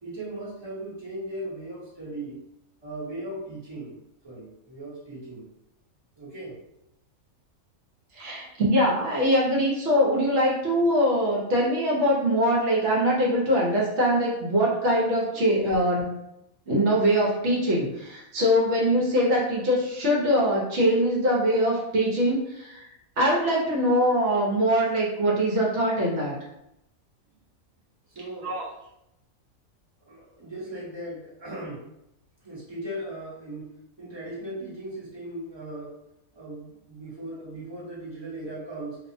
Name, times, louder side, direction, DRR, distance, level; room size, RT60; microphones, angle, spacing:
voice 1, 0.0-2.4 2.8-4.0 4.2-5.4 6.2-6.6 15.3-15.4 28.1-28.6 30.1-31.9 32.4-35.9 36.3-39.0, right 1 dB, 20° right, -8 dB, 0.9 m, -38 dB
voice 2, 8.1-16.2 16.7-22.9 23.2-26.3 28.4-28.6, equal, 65° right, -4 dB, 1.0 m, -23 dB
2.6 x 2.1 x 2.6 m, 0.83 s
omnidirectional pair, 1.4 m